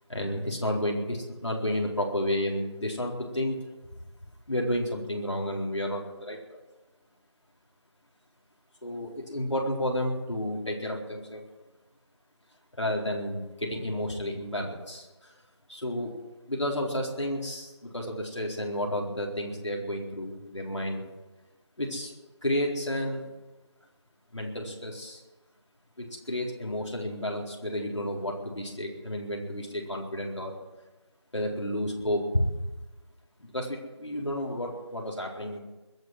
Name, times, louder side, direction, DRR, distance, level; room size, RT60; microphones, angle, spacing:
voice 1, 0.1-3.6 4.5-6.6 8.8-11.4 12.8-15.3 15.7-16.1 16.5-21.0 21.8-22.1 22.4-23.3 24.3-25.2 26.0-30.5 31.3-32.5 33.4-35.6, left 1 dB, 80° left, -1 dB, 4.2 m, -31 dB
22.0 x 8.3 x 7.7 m, 1.1 s
figure-of-eight pair, 175°, 15 cm